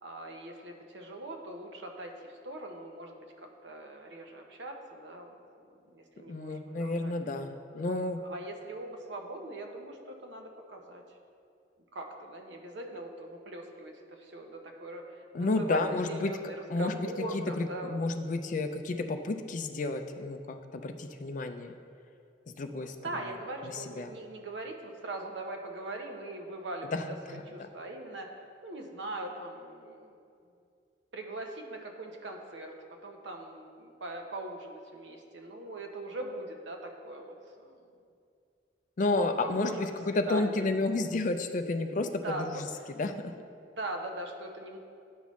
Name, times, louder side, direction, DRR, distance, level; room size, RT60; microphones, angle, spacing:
voice 1, 0.0-7.1 7.7-7.9 8.2-11.2 11.9-15.8 16.1-17.9 22.8-30.2 31.1-37.8 39.4-40.7 42.2-42.6 43.7-44.8, right 2 dB, 80° right, 3 dB, 0.8 m, -41 dB
voice 2, 6.3-8.2 15.3-16.3 16.7-21.8 22.5-23.0 23.6-24.1 26.9-27.7 39.0-42.7 43.0-43.3, left 2 dB, 45° left, 7 dB, 0.4 m, -31 dB
10.0 x 5.5 x 3.1 m, 2.4 s
head